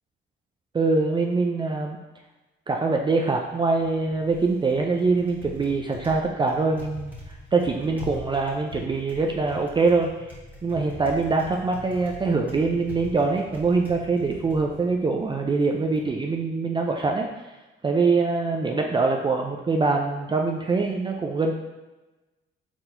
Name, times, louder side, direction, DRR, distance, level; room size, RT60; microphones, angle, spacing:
voice 1, 0.7-2.0 2.7-7.1 7.5-10.1 10.6-17.3 17.8-21.5, right 3 dB, 25° right, 1 dB, 0.4 m, -23 dB
Typing, 3.7-16.1, left 1 dB, 10° right, 1.3 m, -43 dB
4.4 x 4.0 x 2.6 m, 1.1 s
cardioid pair, 90°, 20 cm